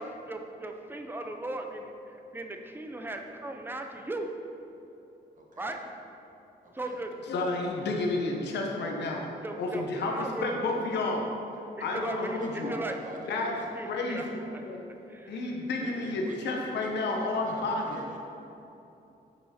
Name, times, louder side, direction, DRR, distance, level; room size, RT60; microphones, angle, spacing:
voice 1, 0.0-4.3 5.6-5.9 6.7-7.1 9.4-10.5 11.8-13.0 13.7-14.2 14.5-14.6 14.9-15.5 15.8-16.4, right 2 dB, 10° right, 4 dB, 0.8 m, -38 dB
voice 2, 5.4-5.7 6.6-7.0 11.9-13.7 15.8-18.2, right 2 dB, 50° right, -1 dB, 1.6 m, -45 dB
voice 3, 7.3-9.2 9.6-11.3 11.8-12.7 13.3-13.5 13.9-14.8 15.3-18.0, left 2 dB, 90° left, 0 dB, 1.1 m, -31 dB
9.3 x 6.1 x 4.4 m, 2.9 s
cardioid pair, 100°, 17 cm